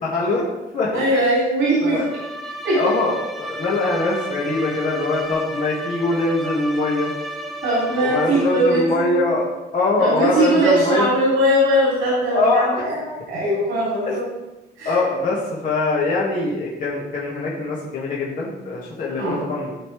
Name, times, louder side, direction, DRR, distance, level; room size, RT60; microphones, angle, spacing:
voice 1, 0.0-0.5 0.7-1.0 1.8-2.1 2.8-7.1 8.0-11.1 12.3-12.8 14.1-14.2 14.9-19.7, left 2 dB, 45° left, -5 dB, 1.8 m, -22 dB
voice 2, 0.9-2.0 2.6-2.8 7.6-9.3 10.0-14.3 14.8-15.0 19.2-19.5, right 1 dB, 75° right, -6 dB, 3.3 m, -20 dB
Bowed string instrument, 1.9-9.0, equal, ahead, 0.9 m, -33 dB
13.5 x 5.8 x 3.4 m, 1.0 s
cardioid pair, 170°, 20 cm